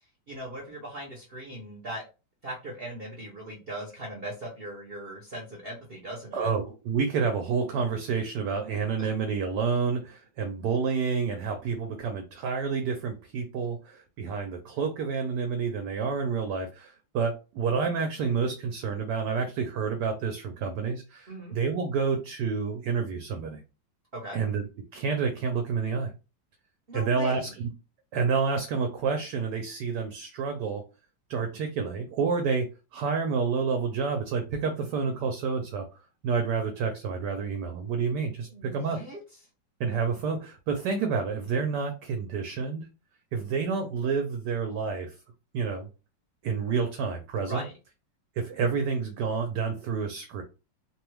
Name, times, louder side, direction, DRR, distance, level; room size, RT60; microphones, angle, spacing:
voice 1, 0.0-2.0 2.4-6.5 9.0-9.1 21.3-21.6 24.1-24.4 26.9-27.6 38.5-39.2 47.5-47.8, right 1 dB, 60° right, -1 dB, 0.6 m, -39 dB
voice 2, 6.3-23.6 24.3-24.6 24.9-26.1 26.9-27.5 28.1-30.8 31.3-35.8 36.2-39.0 39.8-42.9 43.3-45.2 45.5-45.9 46.4-47.6 48.4-50.4, right 5 dB, 75° right, 6 dB, 1.0 m, -29 dB
2.9 x 2.3 x 3.1 m, 0.31 s
omnidirectional pair, 2.1 m